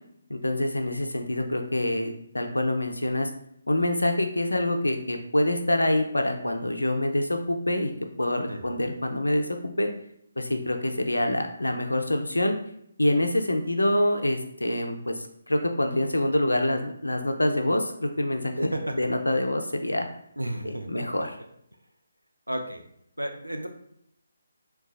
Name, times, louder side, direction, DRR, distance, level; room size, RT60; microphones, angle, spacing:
voice 1, 0.3-3.3 3.7-7.9 8.2-9.9 10.4-12.5 13.0-20.1 20.6-21.3, left 1 dB, 75° left, 5 dB, 0.5 m, -26 dB
voice 2, 8.5-8.9 18.6-19.0 20.4-20.9 22.5-22.8 23.2-23.7, right 1 dB, 85° right, 4 dB, 0.5 m, -32 dB
3.8 x 2.3 x 2.4 m, 0.72 s
figure-of-eight pair, 145°, 0 cm